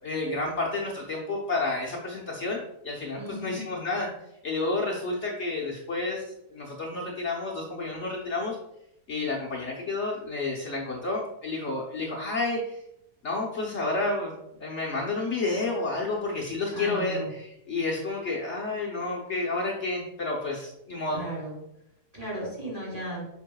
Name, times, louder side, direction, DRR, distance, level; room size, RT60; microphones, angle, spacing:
voice 1, 0.0-2.6 2.8-4.1 4.4-6.2 6.5-8.6 9.1-12.8 13.2-14.3 14.6-21.2, left 3 dB, 50° left, -2 dB, 1.1 m, -30 dB
voice 2, 3.2-3.6 16.7-17.3 21.1-21.6 22.1-23.3, right 1 dB, 20° right, -5 dB, 2.7 m, -35 dB
7.7 x 5.6 x 2.3 m, 0.80 s
omnidirectional pair, 1.7 m